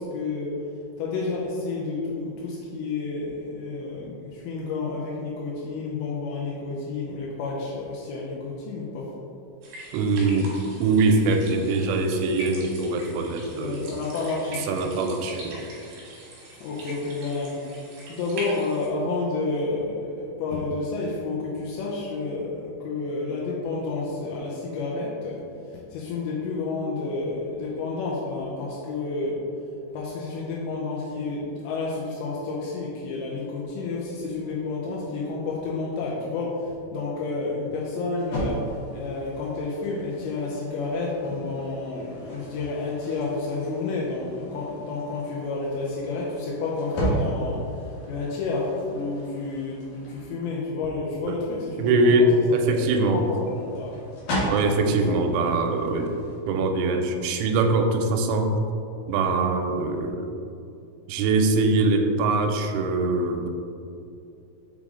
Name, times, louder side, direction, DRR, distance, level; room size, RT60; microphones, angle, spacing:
voice 1, 0.0-9.1 13.5-14.7 16.5-17.8 18.0-29.4 29.9-53.9 54.9-55.2, left 3 dB, 80° left, -5 dB, 2.6 m, -30 dB
sound 1, 9.6-18.9, right 1 dB, 60° right, 2.5 m, -42 dB
voice 2, 9.9-10.5 10.8-13.8 14.7-15.6 51.8-53.2 54.5-56.2 56.5-58.6 59.1-60.3 61.1-63.5, right 2 dB, 85° right, 4 dB, 2.9 m, -22 dB
sound 2, 38.2-50.3 52.7-56.4, right 1 dB, 60° left, 2.1 m, -35 dB
6.9 x 4.8 x 3.7 m, 2.6 s
omnidirectional pair, 5.7 m